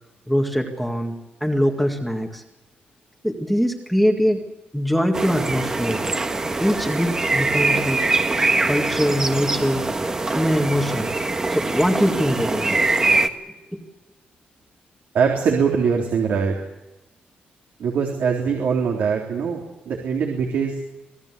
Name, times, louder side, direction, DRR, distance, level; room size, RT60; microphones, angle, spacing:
voice 1, 0.3-1.2 1.4-2.4 3.2-4.4 4.7-6.0 6.6-8.0 8.7-9.9 10.4-11.1 11.5-12.8 13.7-13.8, equal, ahead, 2 dB, 2.0 m, -22 dB
sound 1, 5.1-13.3, right 3 dB, 20° right, 1.4 m, -23 dB
voice 2, 15.1-16.6 17.8-20.8, right 6 dB, 70° right, 1 dB, 3.7 m, -22 dB
26.5 x 18.0 x 8.4 m, 1.0 s
wide cardioid pair, 175°, 3 cm